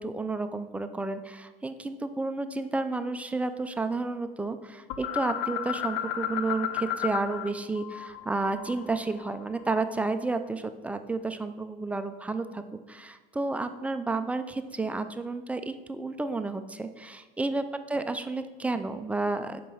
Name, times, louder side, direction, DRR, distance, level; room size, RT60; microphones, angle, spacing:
voice 1, 0.0-12.6 12.9-19.6, right 3 dB, 5° right, 9 dB, 0.4 m, -31 dB
sound 1, 4.9-7.5 7.8-10.1, left 11 dB, 60° left, 0.5 m, -33 dB
5.4 x 4.6 x 5.4 m, 1.3 s
supercardioid pair, 105°, 20 cm